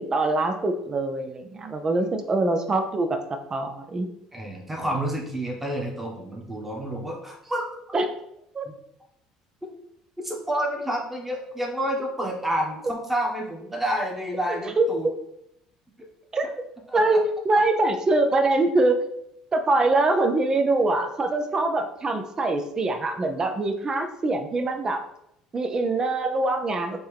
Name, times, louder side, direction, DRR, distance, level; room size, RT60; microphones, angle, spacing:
voice 1, 0.0-4.1 7.9-8.1 8.5-8.7 14.5-14.9 16.3-16.5 16.9-19.0 19.5-25.0 25.5-27.0, right 2 dB, 30° right, 7 dB, 0.5 m, -24 dB
voice 2, 4.3-8.0 10.2-15.1 16.0-16.1 16.9-17.2, right 1 dB, 10° right, -1 dB, 1.3 m, -29 dB
4.3 x 3.0 x 3.4 m, 0.78 s
hypercardioid pair, 70°, 2 cm